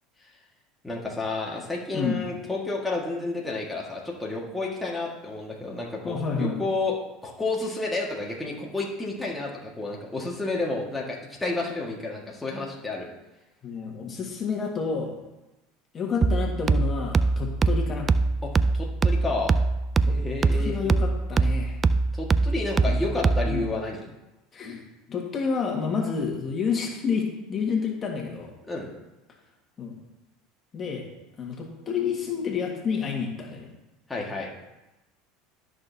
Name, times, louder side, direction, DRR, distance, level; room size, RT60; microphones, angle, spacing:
voice 1, 0.8-7.0 7.2-13.1 18.4-19.5 20.1-20.8 22.1-24.1 28.7-28.9 34.1-34.5, left 2 dB, 10° left, -3 dB, 1.7 m, -31 dB
voice 2, 1.9-2.2 6.0-6.6 13.6-15.2 15.9-18.1 20.1-20.2 20.5-21.8 22.8-23.0 23.4-23.6 24.5-28.5 29.8-30.0 30.7-31.1 31.4-33.7, left 5 dB, 35° left, 0 dB, 1.7 m, -29 dB
sound 1, 16.2-23.7, right 3 dB, 25° right, 0.4 m, -23 dB
13.0 x 6.2 x 2.8 m, 1.0 s
hypercardioid pair, 95°, 0 cm